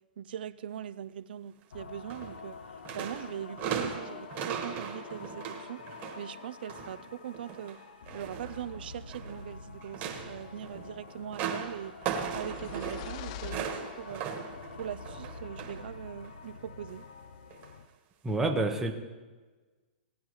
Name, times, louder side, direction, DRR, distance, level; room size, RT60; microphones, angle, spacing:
voice 1, 0.2-2.6 2.9-5.8 6.2-7.8 8.1-12.0 12.3-14.3 14.7-17.1, right 10 dB, 70° right, 0.5 m, -41 dB
sound 1, 1.7-17.9, left 5 dB, 85° left, 0.6 m, -47 dB
sound 2, 2.1-2.6 2.8-7.0 7.3-9.4 9.8-15.9 16.2-16.5 17.5-17.7 18.3-18.4, right 7 dB, 30° right, 1.5 m, -38 dB
sound 3, 12.0-14.4, left 9 dB, 45° left, 0.4 m, -44 dB
voice 2, 18.2-18.9, right 2 dB, 5° right, 0.9 m, -28 dB
18.0 x 10.0 x 3.2 m
hypercardioid pair, 145°, 5 cm